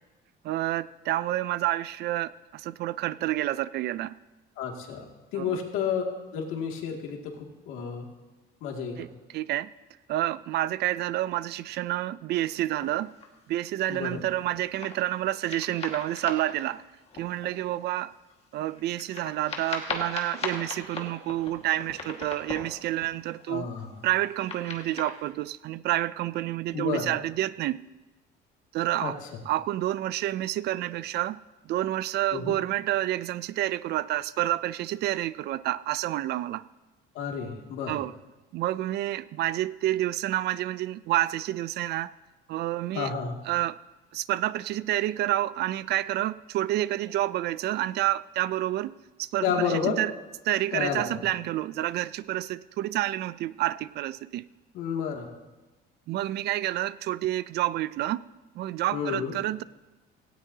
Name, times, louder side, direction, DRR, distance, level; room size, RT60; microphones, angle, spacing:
voice 1, 0.4-4.1 5.4-5.6 9.0-9.1 9.3-9.7 10.1-13.1 13.5-16.8 17.1-18.1 18.5-23.7 24.0-27.8 28.7-29.2 29.5-31.4 31.6-36.6 37.9-38.1 38.5-42.1 42.5-43.1 43.5-43.8 44.1-50.1 50.4-54.5 56.1-58.2 58.6-59.6, right 14 dB, 55° right, 18 dB, 0.4 m, -29 dB
voice 2, 4.6-6.0 6.3-8.1 8.6-9.1 13.9-14.2 23.5-24.0 26.7-27.1 29.0-29.1 32.3-32.6 37.1-38.0 42.9-43.4 49.4-50.0 50.7-51.3 54.7-55.3 58.9-59.4, left 7 dB, 85° left, 1 dB, 2.3 m, -31 dB
sound 1, 12.8-13.3 14.0-15.1 15.4-17.9 18.3-18.4 18.6-23.5 23.9-25.1, left 4 dB, 30° left, 1.7 m, -39 dB
17.5 x 17.0 x 2.8 m, 1.2 s
cardioid pair, 160°, 20 cm